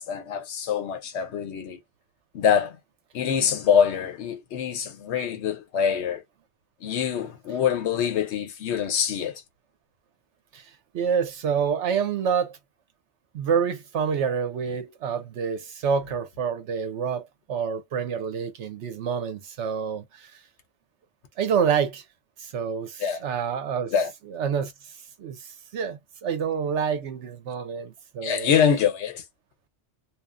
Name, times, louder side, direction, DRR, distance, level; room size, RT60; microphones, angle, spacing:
voice 1, 0.0-1.8 2.3-2.8 3.1-6.2 6.8-9.3 23.0-23.2 23.9-24.1 28.2-29.2, left 7 dB, 70° left, 1.0 m, -24 dB
voice 2, 10.9-12.6 13.3-20.3 21.4-22.0 22.4-23.9 24.3-24.7 25.2-28.6, right 7 dB, 80° right, 1.0 m, -27 dB
2.8 x 2.4 x 2.4 m
omnidirectional pair, 1.2 m